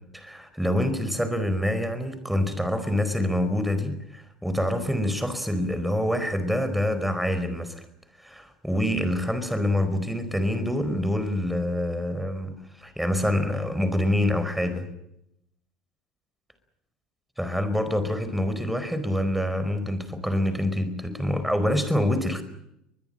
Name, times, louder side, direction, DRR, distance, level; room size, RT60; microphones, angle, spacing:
voice 1, 0.1-7.8 8.2-14.8 17.4-22.4, left 1 dB, ahead, 11 dB, 4.6 m, -26 dB
24.0 x 20.5 x 8.9 m, 0.80 s
figure-of-eight pair, 65°, 3 cm